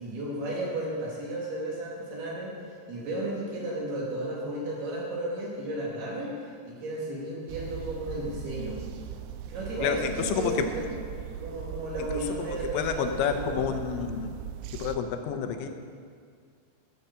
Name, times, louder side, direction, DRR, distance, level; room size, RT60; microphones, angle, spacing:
voice 1, 0.0-2.5 2.9-8.8 9.5-10.9 11.4-13.6, right 1 dB, 65° right, -4 dB, 4.5 m, -33 dB
sound 1, 7.5-15.0, right 10 dB, 85° right, 2.2 m, -39 dB
voice 2, 9.8-10.6 12.4-14.3 14.8-15.7, left 7 dB, 85° left, 6 dB, 3.2 m, -29 dB
12.0 x 8.8 x 6.9 m, 2.1 s
omnidirectional pair, 5.1 m